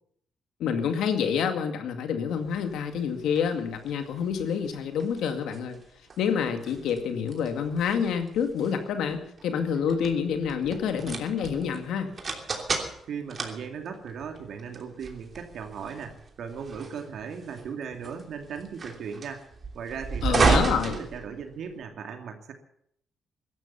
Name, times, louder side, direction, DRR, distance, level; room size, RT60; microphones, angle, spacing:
voice 1, 0.6-5.8 6.2-12.1 20.2-21.0, left 7 dB, 80° left, 6 dB, 2.1 m, -28 dB
sound 1, 2.4-21.8, right 4 dB, 40° right, 3.0 m, -33 dB
voice 2, 13.1-19.5 19.7-20.5 20.9-22.5, right 6 dB, 65° right, 5 dB, 2.5 m, -37 dB
16.0 x 12.5 x 7.0 m, 0.71 s
cardioid pair, 90°, 0 cm